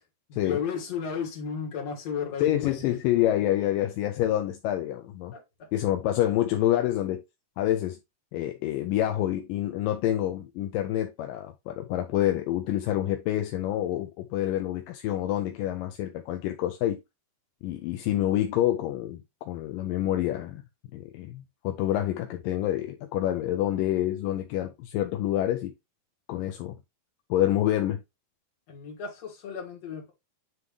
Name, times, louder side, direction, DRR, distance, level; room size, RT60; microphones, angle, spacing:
voice 1, 0.3-2.9 5.3-5.4 28.7-30.1, left 6 dB, 45° left, 3.1 m, -34 dB
voice 2, 2.4-5.3 5.7-7.2 7.6-8.0 8.3-17.0 17.6-20.6 20.9-25.7 26.3-26.8 27.3-28.0, left 13 dB, 80° left, 2.1 m, -27 dB
9.5 x 3.6 x 3.2 m
omnidirectional pair, 4.4 m